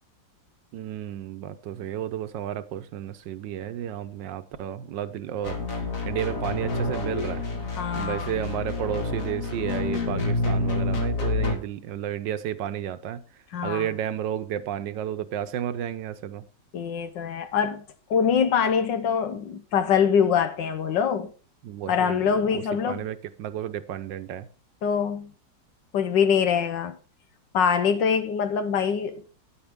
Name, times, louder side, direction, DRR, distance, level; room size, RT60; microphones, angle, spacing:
voice 1, 0.7-7.4 7.9-13.2 13.6-16.5 21.6-22.2 22.5-24.5, right 10 dB, 80° right, 1.5 m, -32 dB
sound 1, 5.4-11.5, left 3 dB, 45° left, 2.2 m, -28 dB
voice 2, 7.8-8.3 13.5-13.9 16.7-17.8 18.1-21.3 21.9-23.0 24.8-25.3 25.9-27.0 27.5-29.2, left 7 dB, 80° left, 1.6 m, -24 dB
10.0 x 9.5 x 3.6 m
omnidirectional pair, 2.0 m